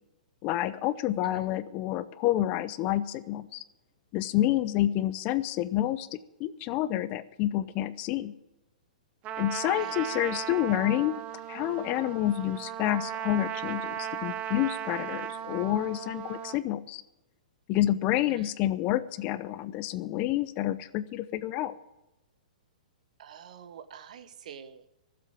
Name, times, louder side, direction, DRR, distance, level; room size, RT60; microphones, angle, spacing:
voice 1, 0.4-3.6 4.1-8.3 9.4-11.2 11.5-17.0 17.7-21.7, left 14 dB, 35° left, 15 dB, 0.6 m, -29 dB
Trumpet, 9.2-16.6, right 10 dB, 30° right, 0.7 m, -36 dB
voice 2, 9.7-10.0 18.3-18.5 23.2-24.9, right 8 dB, 60° right, 12 dB, 1.1 m, -47 dB
13.5 x 7.7 x 8.5 m, 0.97 s
hypercardioid pair, 125°, 4 cm